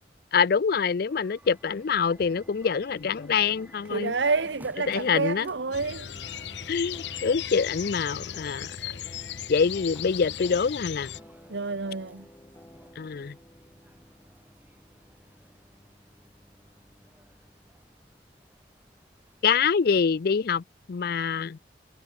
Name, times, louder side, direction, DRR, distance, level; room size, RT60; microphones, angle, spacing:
voice 1, 0.3-4.1 4.9-5.5 6.7-8.7 9.5-11.1 13.0-13.4 19.4-20.6 20.9-21.6, left 6 dB, 55° left, 0.4 m, -25 dB
sound 1, 1.1-19.7, right 1 dB, 10° right, 7.3 m, -57 dB
sound 2, 1.9-18.7, equal, 15° left, 3.4 m, -54 dB
voice 2, 3.9-6.1 11.5-12.3, right 4 dB, 80° right, 1.1 m, -28 dB
sound 3, 5.7-11.2, left 9 dB, 80° left, 0.9 m, -37 dB
head